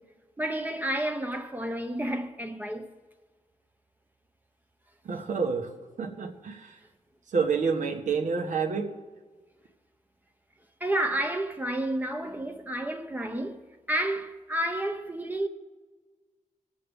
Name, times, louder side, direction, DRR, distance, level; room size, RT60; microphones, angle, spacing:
voice 1, 0.4-2.9 10.8-13.6 13.9-15.5, right 1 dB, 15° right, 0.7 m, -30 dB
voice 2, 5.0-5.7 6.0-6.8 7.3-8.9, right 5 dB, 70° right, 1.4 m, -28 dB
20.0 x 7.6 x 3.6 m
wide cardioid pair, 120°, 14 cm